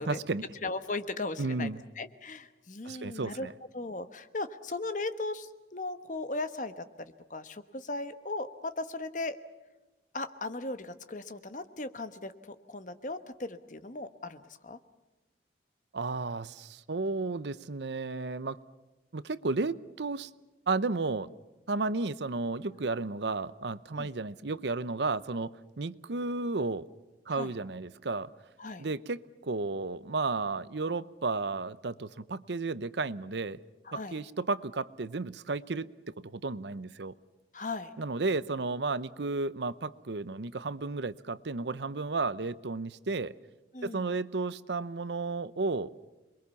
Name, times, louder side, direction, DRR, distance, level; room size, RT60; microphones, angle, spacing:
voice 1, 0.0-0.4 1.4-1.8 2.8-3.5 15.9-18.6 19.1-20.3 20.7-21.3 21.7-26.9 27.3-28.3 28.8-33.6 33.9-37.1 38.0-43.3 43.8-45.9, right 3 dB, 75° right, 17 dB, 0.7 m, -33 dB
voice 2, 0.6-3.5 3.7-9.4 10.1-14.8 24.0-24.1 27.3-27.5 28.6-28.8 33.8-34.2 37.5-37.9 43.7-44.2, left 2 dB, 45° left, 11 dB, 1.2 m, -37 dB
27.5 x 21.5 x 7.0 m, 1.1 s
head